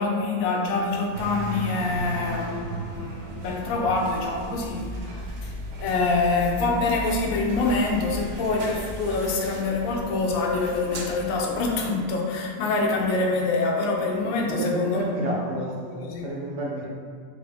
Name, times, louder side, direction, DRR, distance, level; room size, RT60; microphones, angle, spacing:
voice 1, 0.0-4.9 5.4-5.5 5.8-15.0 16.0-16.3, left 3 dB, 70° left, 0 dB, 0.9 m, -25 dB
sound 1, 1.1-11.9, equal, 85° right, 1.1 m, -35 dB
voice 2, 14.5-15.7 16.2-16.9, right 1 dB, 70° right, -5 dB, 0.7 m, -29 dB
3.4 x 2.5 x 3.3 m, 2.1 s
omnidirectional pair, 1.6 m